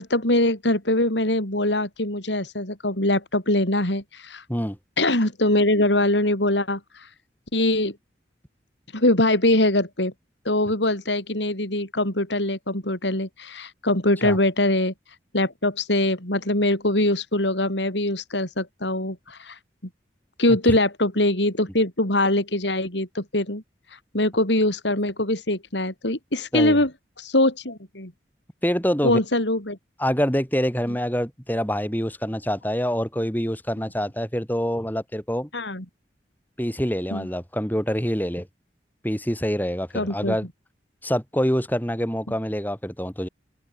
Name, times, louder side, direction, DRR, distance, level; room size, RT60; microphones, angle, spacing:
voice 1, 0.0-4.4 5.0-7.1 7.5-8.0 8.9-10.1 10.5-14.9 15.3-19.6 20.4-23.6 24.1-26.9 27.2-28.1 29.0-29.8 35.5-35.9 37.1-37.3 39.9-40.4, left 1 dB, 85° left, 7.0 m, -23 dB
voice 2, 28.6-29.2 30.0-35.5 36.6-38.5 39.0-40.5 41.0-43.3, equal, 10° left, 6.0 m, -25 dB
open air
head